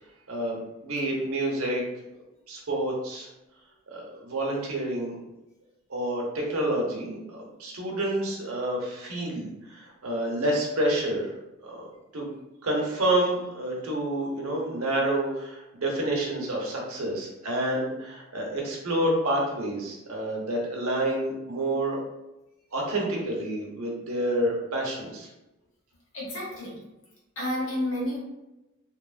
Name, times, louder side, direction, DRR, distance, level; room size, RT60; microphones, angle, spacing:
voice 1, 0.3-1.8 2.5-3.3 3.9-5.1 5.9-11.3 11.6-11.9 12.1-12.3 12.6-22.0 22.7-25.3, right 1 dB, 80° right, -1 dB, 0.7 m, -28 dB
voice 2, 26.1-26.8 27.4-28.2, left 1 dB, 65° left, -6 dB, 1.2 m, -30 dB
2.9 x 2.3 x 2.4 m, 0.96 s
head